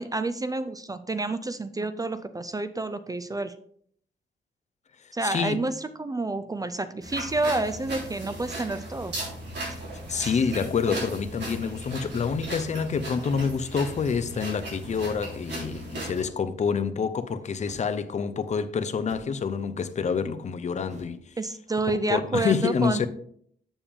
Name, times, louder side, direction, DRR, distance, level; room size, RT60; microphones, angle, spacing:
voice 1, 0.0-3.5 5.1-9.1 10.1-10.3 21.4-23.1, right 2 dB, 20° right, 0.3 m, -29 dB
voice 2, 5.2-5.7 10.1-21.2 22.1-23.1, left 6 dB, 40° left, 0.5 m, -27 dB
sound 1, 7.0-16.2, right 1 dB, 65° right, 3.6 m, -37 dB
sound 2, 13.3-13.8 14.8-15.1 16.1-16.5 17.6-17.9 19.0-19.5 20.8-21.2, right 2 dB, 40° right, 1.1 m, -47 dB
7.1 x 7.0 x 3.4 m
wide cardioid pair, 155°, 19 cm